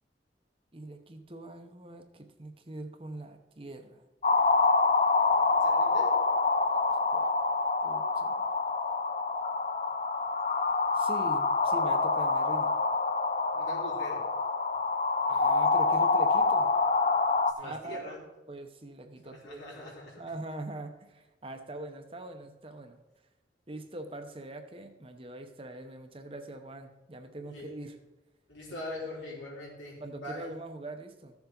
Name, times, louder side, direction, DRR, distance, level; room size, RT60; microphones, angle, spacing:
voice 1, 0.7-4.0 6.9-7.3 7.8-8.5 10.9-12.8 15.3-16.8 17.6-18.0 18.5-19.8 20.2-23.0 23.7-28.0 30.0-31.3, right 2 dB, 30° right, 6 dB, 0.8 m, -43 dB
sound 1, 4.2-17.5, left 3 dB, 40° left, 0.5 m, -26 dB
voice 2, 5.3-6.1 13.5-14.3 17.6-18.2 19.2-20.2 27.4-27.7 28.5-30.5, left 1 dB, 90° left, -4 dB, 4.0 m, -42 dB
14.0 x 7.1 x 3.9 m, 1.0 s
head